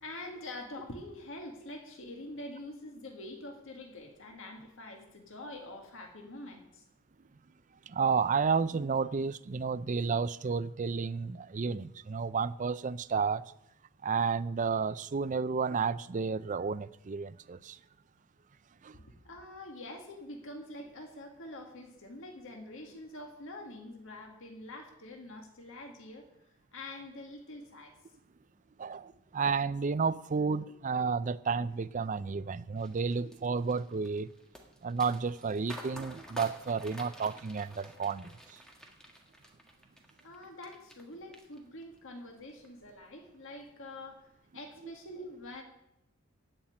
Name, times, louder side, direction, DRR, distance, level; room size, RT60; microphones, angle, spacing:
voice 1, 0.0-6.9 18.9-26.3 26.7-28.0 40.2-45.6, left 1 dB, 60° left, 1.9 m, -45 dB
voice 2, 7.9-13.4 14.0-17.8 18.8-19.0 28.8-34.3 34.8-38.6, right 5 dB, 35° right, 0.4 m, -31 dB
sound 1, 32.8-41.0 41.3-42.0 42.4-42.7, equal, 5° left, 1.6 m, -50 dB
16.0 x 5.8 x 9.8 m
head